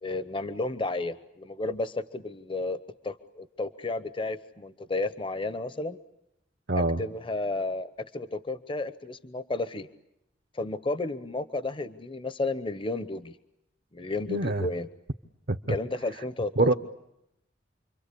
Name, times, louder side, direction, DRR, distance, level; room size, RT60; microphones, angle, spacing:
voice 1, 0.0-2.8 3.0-6.0 6.7-9.9 10.5-13.4 13.9-14.9 15.7-16.7, left 2 dB, 30° left, 13 dB, 1.0 m, -32 dB
voice 2, 6.7-7.0 14.3-14.7 15.5-15.7 16.6-16.7, right 2 dB, 60° right, 7 dB, 1.0 m, -25 dB
29.0 x 24.0 x 8.5 m, 0.82 s
head